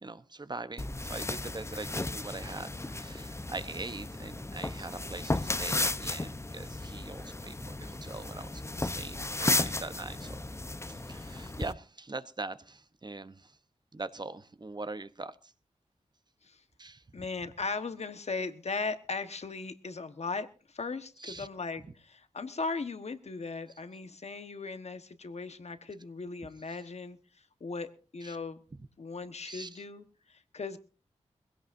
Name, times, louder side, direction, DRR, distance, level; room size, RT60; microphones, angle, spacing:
voice 1, 0.0-10.4 10.9-13.6 13.9-15.5 16.8-17.2 21.2-21.5 28.2-28.4 28.8-28.9 29.4-29.8, right 3 dB, 35° right, 0.9 m, -42 dB
sound 1, 0.8-11.7, left 2 dB, 20° left, 0.8 m, -34 dB
voice 2, 17.1-27.2 27.6-28.6 29.0-30.8, left 4 dB, 65° left, 1.3 m, -38 dB
21.0 x 16.5 x 2.6 m
cardioid pair, 50°, 12 cm